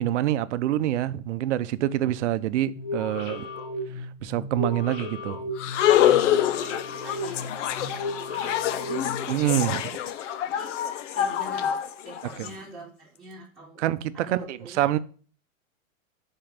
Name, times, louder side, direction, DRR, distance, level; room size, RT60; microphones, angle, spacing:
voice 1, 0.0-3.5 4.0-5.4 9.3-9.8 12.4-12.5 13.8-15.0, right 13 dB, 55° right, 0.7 m, -26 dB
sound 1, 2.8-9.6, left 2 dB, 35° left, 1.6 m, -35 dB
sound 2, 5.6-12.5, left 11 dB, 60° left, 0.8 m, -26 dB
voice 2, 5.9-10.7 11.1-13.8 14.1-15.0, right 1 dB, ahead, 3.0 m, -46 dB
11.5 x 4.6 x 5.2 m
hypercardioid pair, 155°, 42 cm